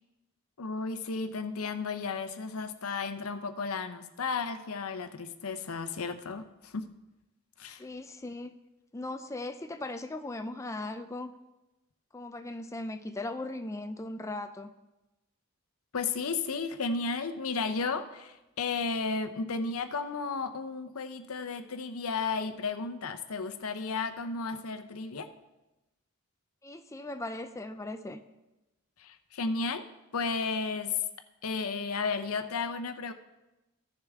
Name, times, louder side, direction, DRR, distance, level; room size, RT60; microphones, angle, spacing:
voice 1, 0.6-6.9 7.6-7.8 15.9-25.3 29.0-29.8 30.1-31.0 31.4-33.1, left 4 dB, 90° left, 9 dB, 0.7 m, -33 dB
voice 2, 7.8-8.5 8.9-11.3 12.1-14.7 26.6-28.2, left 2 dB, 15° left, 7 dB, 0.4 m, -38 dB
15.0 x 6.6 x 3.6 m, 1.0 s
head